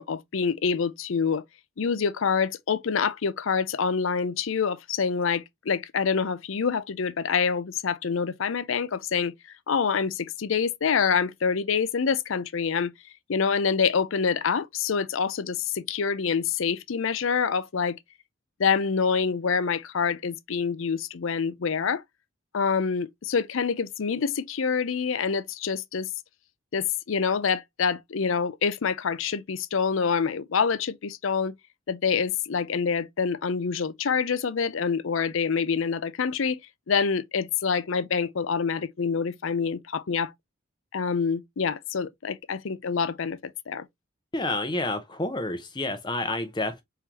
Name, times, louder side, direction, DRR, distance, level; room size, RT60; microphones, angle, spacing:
voice 1, 0.0-1.4 1.8-9.3 9.7-12.9 13.3-18.0 18.6-22.0 22.5-26.1 26.7-31.5 31.9-36.6 36.9-40.3 40.9-43.4 43.7-43.8, left 6 dB, 75° left, 0.5 m, -26 dB
voice 2, 44.3-46.8, left 2 dB, 20° left, 0.7 m, -29 dB
4.4 x 3.8 x 2.8 m
head